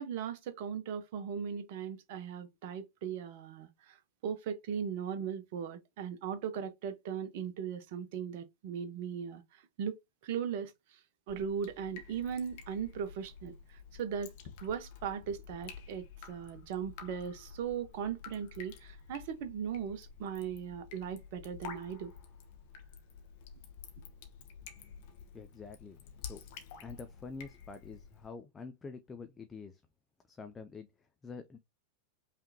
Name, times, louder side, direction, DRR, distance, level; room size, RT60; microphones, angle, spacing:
voice 1, 0.0-4.0 4.2-9.4 9.8-10.0 10.2-10.7 11.3-13.5 13.9-14.3 14.6-22.1, right 7 dB, 50° right, 1.0 m, -38 dB
Drip, 11.3-28.3, left 6 dB, 50° left, 1.2 m, -51 dB
voice 2, 25.3-29.8 30.3-31.6, left 4 dB, 15° left, 0.6 m, -47 dB
5.5 x 3.4 x 2.8 m
figure-of-eight pair, 90°, 0 cm